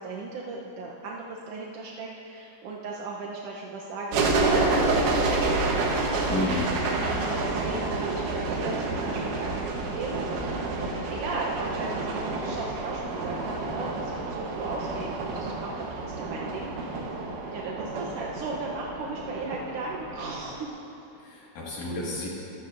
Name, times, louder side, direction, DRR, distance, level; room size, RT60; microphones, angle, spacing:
voice 1, 0.0-5.3 7.2-10.7 11.1-17.1 17.5-20.8, right 3 dB, 70° right, -3 dB, 1.5 m, -36 dB
sound 1, 4.1-20.6, right 3 dB, 85° right, 2.7 m, -29 dB
voice 2, 6.3-6.7 21.2-22.3, left 2 dB, 75° left, -5 dB, 3.3 m, -31 dB
21.0 x 13.0 x 2.6 m, 2.9 s
omnidirectional pair, 3.6 m